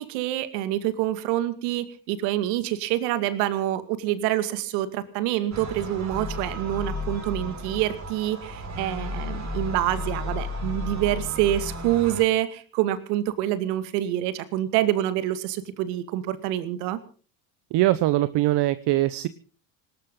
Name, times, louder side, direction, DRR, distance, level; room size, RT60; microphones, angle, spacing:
voice 1, 0.0-17.0, right 13 dB, 80° right, 11 dB, 2.3 m, -26 dB
sound 1, 5.5-12.2, left 1 dB, 35° right, 4.9 m, -33 dB
voice 2, 17.7-19.3, right 16 dB, 55° right, 14 dB, 1.0 m, -22 dB
19.0 x 19.0 x 3.8 m, 0.40 s
supercardioid pair, 95°, 48 cm